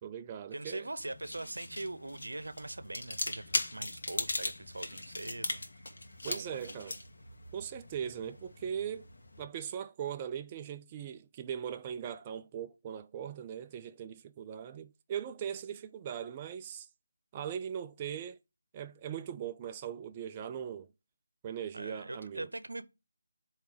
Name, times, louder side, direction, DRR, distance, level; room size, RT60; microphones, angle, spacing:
voice 1, 0.0-0.9 6.2-6.9 7.5-9.1 9.4-16.9 17.3-18.4 18.7-20.9 21.4-22.5, right 8 dB, 25° right, 0.3 m, -40 dB
voice 2, 0.5-3.4 3.7-5.6 6.2-6.9 21.7-22.8, right 2 dB, 85° right, 0.8 m, -42 dB
sound 1, 1.0-9.4, left 2 dB, 70° left, 1.5 m, -39 dB
7.6 x 3.2 x 4.9 m
figure-of-eight pair, 160°, 0 cm